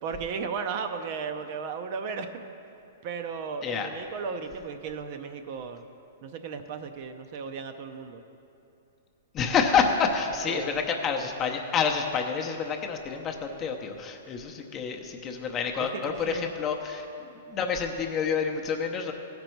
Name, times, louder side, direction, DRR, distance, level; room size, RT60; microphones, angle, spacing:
voice 1, 0.0-2.4 3.0-5.9 6.2-8.2 10.5-10.7 15.9-16.5, right 5 dB, 45° right, 7 dB, 0.6 m, -35 dB
voice 2, 9.3-17.1 17.5-19.1, left 6 dB, 25° left, 3 dB, 0.7 m, -28 dB
15.5 x 5.3 x 4.5 m, 2.7 s
hypercardioid pair, 155°, 0 cm